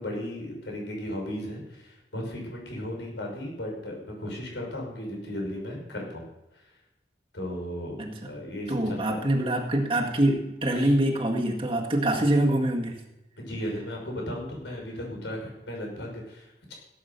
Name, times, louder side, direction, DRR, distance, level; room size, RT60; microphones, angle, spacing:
voice 1, 0.0-6.3 6.5-6.7 7.3-8.0 8.2-9.2 10.8-10.9 13.4-16.7, left 1 dB, 80° left, 0 dB, 5.4 m, -35 dB
voice 2, 8.0-8.3 8.7-13.0, right 1 dB, 30° right, 0 dB, 1.8 m, -25 dB
17.0 x 8.5 x 6.8 m, 0.94 s
head